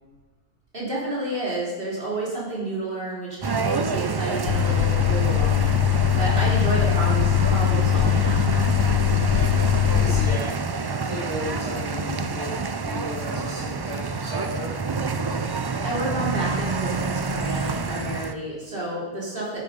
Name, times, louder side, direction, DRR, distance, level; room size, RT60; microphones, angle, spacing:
voice 1, 0.7-5.8 6.1-8.7 15.6-19.6, right 1 dB, 55° right, -5 dB, 4.1 m, -30 dB
sound 1, 3.4-18.3, right 4 dB, 35° right, 0.4 m, -28 dB
sound 2, 4.5-10.4, left 13 dB, 85° left, 0.9 m, -21 dB
voice 2, 9.9-10.5 11.0-12.6 12.8-14.7, left 1 dB, 80° right, -6 dB, 2.8 m, -34 dB
10.5 x 9.7 x 5.3 m, 1.3 s
omnidirectional pair, 1.2 m